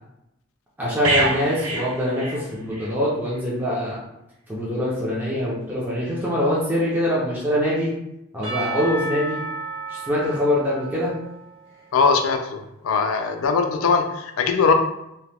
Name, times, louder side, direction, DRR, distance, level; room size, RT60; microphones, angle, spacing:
voice 1, 0.8-4.0 4.5-7.9 8.3-9.4 9.9-11.1, left 1 dB, 10° right, -7 dB, 0.6 m, -23 dB
sound 1, 1.0-2.9 3.3-3.5, right 2 dB, 80° right, 0.6 m, -26 dB
Percussion / Church bell, 8.4-12.1, right 2 dB, 65° right, 1.1 m, -33 dB
voice 2, 11.9-14.7, left 5 dB, 80° left, 5 dB, 0.4 m, -21 dB
2.9 x 2.3 x 3.4 m, 0.85 s
head